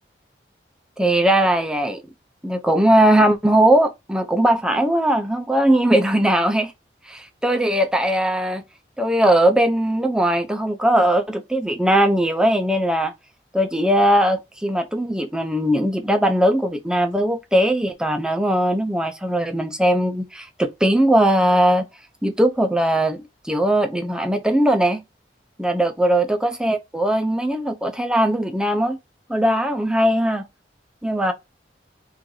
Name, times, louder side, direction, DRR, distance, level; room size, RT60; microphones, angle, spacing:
voice 1, 1.0-2.0 2.4-6.7 7.1-8.6 9.0-13.1 13.5-21.9 22.2-25.0 25.6-29.0 29.3-30.5 31.0-31.3, right 1 dB, 5° right, 0.5 m, -19 dB
3.8 x 2.6 x 4.5 m
head